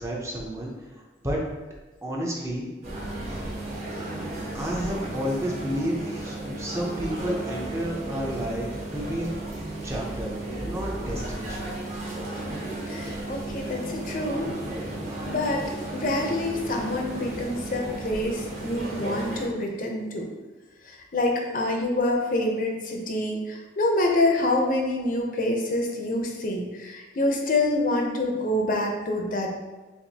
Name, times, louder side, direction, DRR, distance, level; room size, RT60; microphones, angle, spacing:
voice 1, 0.0-1.4 2.0-2.7 3.3-3.4 4.5-9.3 9.8-10.3 10.6-11.7, equal, 15° right, -3 dB, 0.7 m, -31 dB
sound 1, 2.8-19.5, right 1 dB, 35° right, 1.1 m, -34 dB
voice 2, 12.9-14.5 15.3-15.6 15.9-20.3 20.8-29.5, left 1 dB, 50° left, 1 dB, 0.6 m, -26 dB
7.0 x 2.6 x 2.8 m, 1.2 s
head